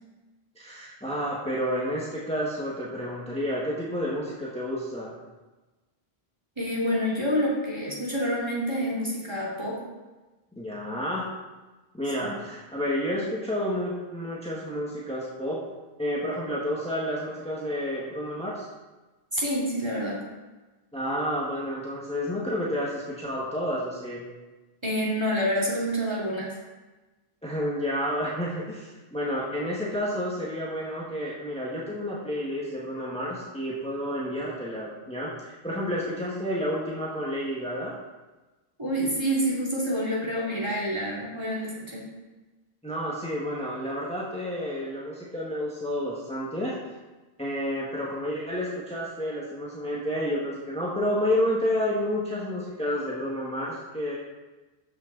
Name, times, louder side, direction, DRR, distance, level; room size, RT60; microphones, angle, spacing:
voice 1, 0.5-5.2 10.6-11.3 11.9-15.6 16.0-18.7 20.9-24.3 27.4-37.9 42.8-46.7 47.4-54.1, equal, 5° left, -6 dB, 1.6 m, -30 dB
voice 2, 6.6-9.8 12.2-12.4 19.3-20.2 24.8-26.6 38.8-42.1, equal, 25° right, -5 dB, 2.6 m, -28 dB
13.0 x 6.0 x 4.0 m, 1.2 s
omnidirectional pair, 1.1 m